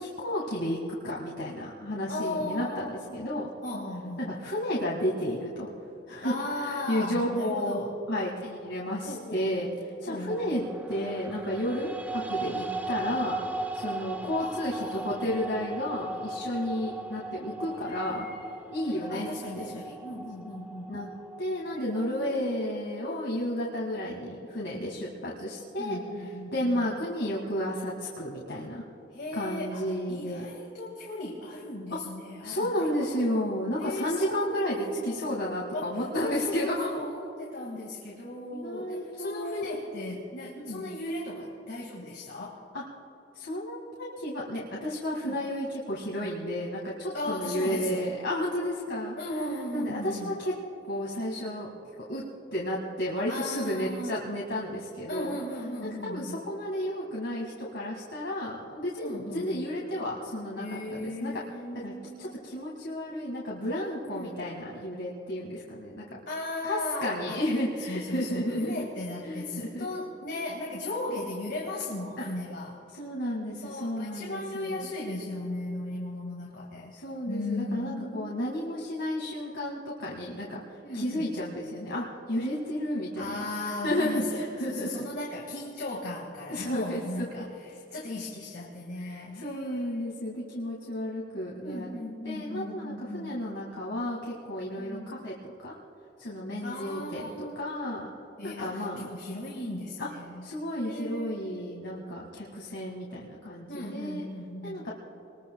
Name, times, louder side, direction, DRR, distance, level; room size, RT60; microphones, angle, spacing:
voice 1, 0.0-3.5 4.2-5.7 6.1-9.7 10.0-13.4 13.7-18.3 18.7-19.3 19.5-19.8 20.9-21.1 21.4-28.8 29.3-30.4 31.9-32.0 32.4-37.0 38.5-39.6 40.6-40.9 42.7-42.8 43.3-49.2 49.7-50.5 50.9-51.7 52.1-52.2 52.5-55.4 56.0-61.3 61.7-66.2 66.6-68.9 69.2-69.9 72.2-72.3 72.9-74.9 76.9-85.1 86.5-87.4 89.0-91.9 92.2-95.7 96.2-98.1 98.4-99.1 100.0-100.1 100.4-104.3 104.6-104.9, equal, 85° left, -4 dB, 1.9 m, -32 dB
voice 2, 2.1-3.2 3.6-4.4 6.2-7.9 9.0-9.8 10.1-10.6 14.4-15.1 17.8-20.9 21.7-22.7 25.8-26.9 29.1-33.1 33.8-35.9 36.2-42.6 45.1-45.4 47.1-48.1 49.2-50.4 53.3-54.2 55.1-56.4 59.0-59.7 60.6-62.3 64.1-64.3 66.3-67.4 67.9-72.8 73.6-76.9 77.3-78.4 80.8-81.4 83.2-90.1 91.6-93.4 94.8-95.1 96.6-97.6 98.4-100.5 100.8-101.6 103.7-104.9, left 1 dB, 60° left, -3 dB, 2.0 m, -37 dB
sound 1, 10.3-22.5, right 2 dB, 10° right, 0.6 m, -38 dB
25.0 x 21.0 x 2.3 m, 2.8 s
head